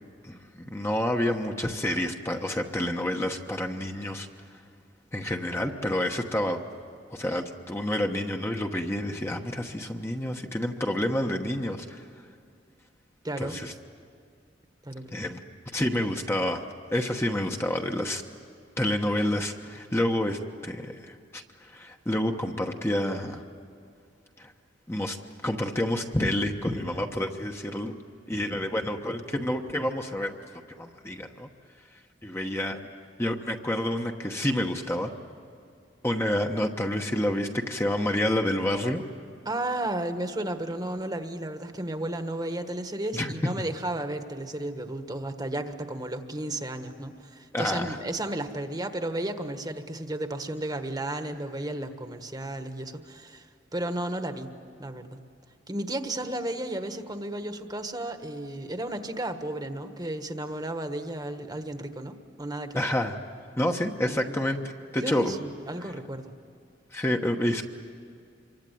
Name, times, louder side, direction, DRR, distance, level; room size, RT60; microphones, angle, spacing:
voice 1, 0.2-4.3 5.1-6.6 7.1-12.0 13.4-13.7 15.1-15.4 15.7-16.7 16.9-18.2 18.8-21.4 21.7-23.4 24.4-24.5 24.9-25.2 25.4-27.9 28.3-30.4 30.8-31.5 32.2-32.8 33.2-35.1 36.0-39.0 43.1-43.3 47.5-48.0 62.7-63.2 63.6-64.6 64.9-65.4 66.9-67.6, left 1 dB, 15° left, 3 dB, 1.1 m, -28 dB
voice 2, 13.2-13.6 14.8-15.3 39.4-54.5 54.8-55.2 55.7-62.9 64.1-64.6 65.0-66.3, right 1 dB, 20° right, 7 dB, 1.4 m, -33 dB
26.5 x 24.0 x 9.3 m, 2.3 s
head